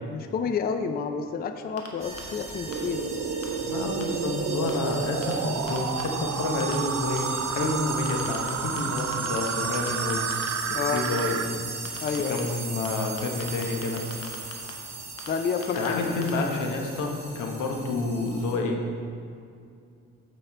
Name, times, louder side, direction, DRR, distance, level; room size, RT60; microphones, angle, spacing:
voice 1, 0.1-3.1 10.7-11.0 12.0-12.4 15.3-16.0, left 6 dB, 30° left, 8 dB, 0.4 m, -29 dB
sound 1, 1.8-1.9 2.2-2.3 2.7-2.8 3.4-3.5 4.0-4.1 4.7-4.8 5.2-5.3 5.7-6.0 6.6-6.8 7.2-7.3 8.1-8.5 8.8-9.5 9.7-10.5 11.0-11.2 11.8-12.4 12.8-12.9 13.2-14.7 15.2-15.3 15.6-15.9 16.2-16.3, left 6 dB, 55° left, 1.1 m, -40 dB
sound 2, 2.0-18.5, right 3 dB, 20° right, 1.4 m, -37 dB
sound 3, 2.7-11.5, right 8 dB, 55° right, 0.5 m, -31 dB
voice 2, 3.6-10.4 10.8-11.4 12.3-14.0 15.7-18.8, left 3 dB, 85° left, 2 dB, 1.0 m, -29 dB
8.0 x 5.2 x 4.3 m, 2.4 s
cardioid pair, 90°, 30 cm